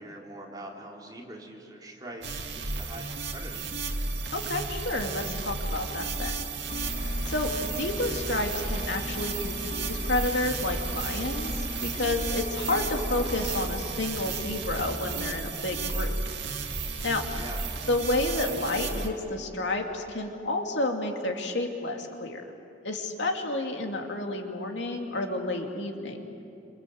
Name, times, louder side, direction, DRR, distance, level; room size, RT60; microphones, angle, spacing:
voice 1, 0.0-3.8 17.3-17.6, right 1 dB, 20° right, -2 dB, 3.6 m, -43 dB
sound 1, 2.2-19.1, right 4 dB, 70° right, 2.3 m, -33 dB
voice 2, 4.3-6.4 7.3-16.2 17.0-17.2 17.9-22.4 22.8-26.2, left 2 dB, 75° left, 3 dB, 2.6 m, -30 dB
sound 2, 6.7-13.7, left 2 dB, 45° left, 1.1 m, -38 dB
28.0 x 26.5 x 7.9 m, 2.7 s
head